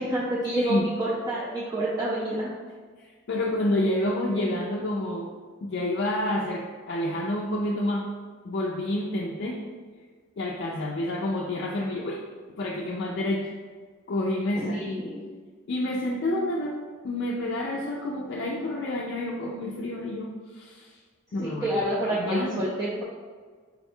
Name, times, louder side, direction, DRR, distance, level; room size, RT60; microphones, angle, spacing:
voice 1, 0.0-2.5 14.6-15.2 21.3-23.0, right 1 dB, 20° right, -7 dB, 0.4 m, -28 dB
voice 2, 0.5-0.8 3.3-5.3 5.6-8.1 8.4-9.6 10.4-12.2 12.6-13.5 14.1-14.9 15.7-16.8 17.0-20.9 21.3-21.8 22.1-22.7, left 1 dB, 55° left, -2 dB, 0.4 m, -28 dB
4.0 x 2.2 x 4.3 m, 1.5 s
head